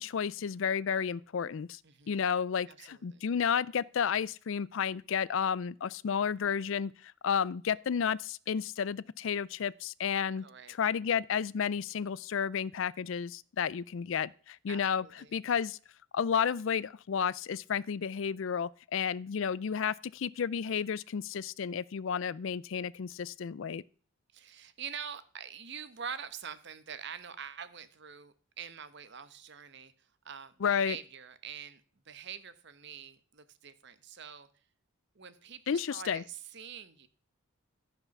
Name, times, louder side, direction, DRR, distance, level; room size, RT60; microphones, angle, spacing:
voice 1, 0.0-1.8 2.1-15.0 15.3-15.8 16.1-23.8 30.6-31.0 35.7-36.2, left 7 dB, 65° left, 0.4 m, -32 dB
voice 2, 1.8-2.2 2.7-3.2 10.4-10.8 14.7-15.3 24.3-29.9 30.2-31.8 32.1-34.5 35.1-37.1, right 7 dB, 55° right, 1.0 m, -45 dB
14.5 x 5.7 x 5.9 m
head